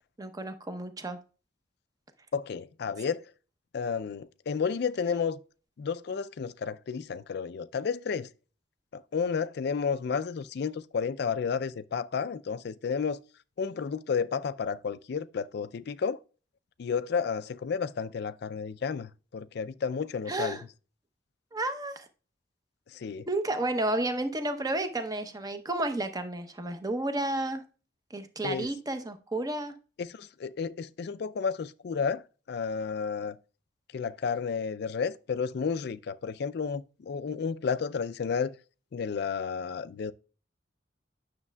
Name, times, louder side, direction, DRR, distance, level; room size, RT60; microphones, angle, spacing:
voice 1, 0.2-1.2 20.3-20.6 21.5-22.1 23.3-27.6 28.1-29.7, right 2 dB, 20° right, 0.7 m, -31 dB
voice 2, 2.3-3.2 3.7-5.4 5.8-8.3 8.9-13.2 13.6-16.2 16.8-20.6 22.9-23.3 28.4-28.7 30.0-32.2 32.5-33.4 33.9-38.5 38.9-40.1, left 6 dB, 60° left, 0.4 m, -32 dB
9.6 x 6.4 x 2.3 m
head